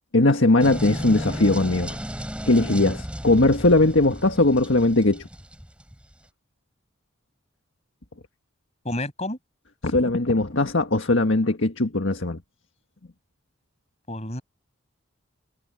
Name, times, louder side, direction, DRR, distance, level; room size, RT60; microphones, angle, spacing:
voice 1, 0.1-2.0 2.5-5.3 9.8-12.4, left 2 dB, 65° left, 1.7 m, -20 dB
sound 1, 0.6-6.1, equal, 5° right, 5.4 m, -34 dB
voice 2, 8.9-9.4 14.1-14.4, left 1 dB, 30° left, 7.0 m, -29 dB
head